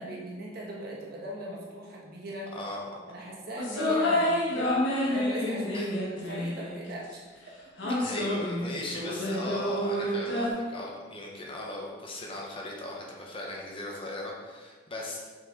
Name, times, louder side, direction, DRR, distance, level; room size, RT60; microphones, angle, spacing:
voice 1, 0.0-2.5 3.1-7.4 7.9-8.0, right 1 dB, 50° right, -4 dB, 1.4 m, -39 dB
voice 2, 2.5-2.9 5.7-5.9 8.0-15.2, left 1 dB, 30° left, -2 dB, 0.9 m, -38 dB
sound 1, 3.6-6.9 7.8-10.5, left 1 dB, 70° left, 1.2 m, -29 dB
6.2 x 4.4 x 3.7 m, 1.4 s
head